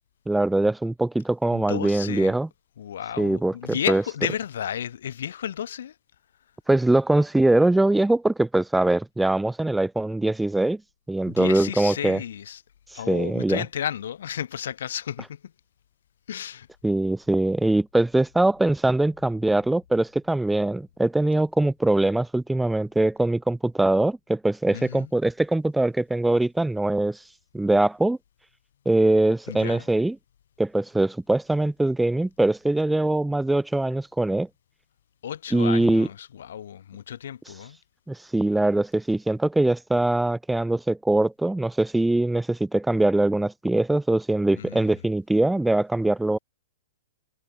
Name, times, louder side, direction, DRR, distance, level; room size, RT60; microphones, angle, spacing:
voice 1, 0.3-2.5 3.2-3.5 3.9-4.0 6.7-10.8 11.1-12.2 13.1-13.6 16.8-27.2 27.5-28.2 28.8-30.1 30.6-34.5 35.5-36.1 38.1-46.4, right 2 dB, 5° right, 1.3 m, -22 dB
voice 2, 1.5-2.4 2.8-5.9 11.3-12.6 12.9-15.5 16.3-16.7 24.7-25.1 29.5-29.9 35.2-37.8 44.5-45.0, left 9 dB, 70° left, 7.8 m, -33 dB
hypercardioid pair, 120°, 0 cm